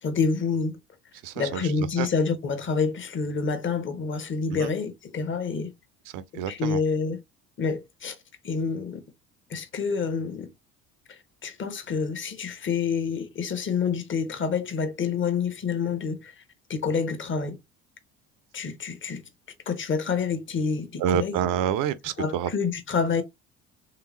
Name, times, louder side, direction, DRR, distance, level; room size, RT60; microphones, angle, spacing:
voice 1, 0.0-0.7 1.4-5.7 6.5-7.2 7.6-8.2 8.4-9.0 9.5-10.5 11.1-16.4 16.7-17.6 18.5-19.2 19.7-21.4 22.2-23.2, left 5 dB, 30° left, 1.0 m, -28 dB
voice 2, 1.2-2.1 4.5-4.7 6.1-6.8 21.0-22.5, right 10 dB, 50° right, 0.6 m, -28 dB
3.4 x 2.9 x 3.1 m
figure-of-eight pair, 55°, 40 cm